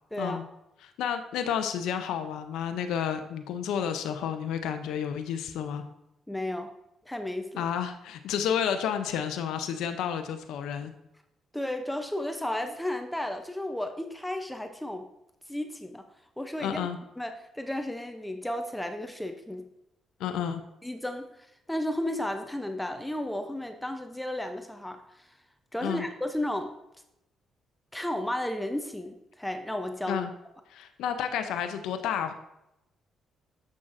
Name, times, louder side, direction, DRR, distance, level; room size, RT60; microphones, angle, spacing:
voice 1, 0.8-5.8 7.6-10.9 16.6-17.0 20.2-20.6 25.8-26.1 30.1-30.3 30.7-32.3, left 8 dB, 85° left, 7 dB, 0.5 m, -31 dB
voice 2, 6.3-6.7 7.1-7.7 11.5-15.1 15.5-16.1 16.4-16.8 17.2-19.7 20.8-25.3 25.7-26.7 27.9-30.2, left 1 dB, 5° left, 6 dB, 0.5 m, -33 dB
7.3 x 6.2 x 2.5 m, 0.86 s
cardioid pair, 90°, 0 cm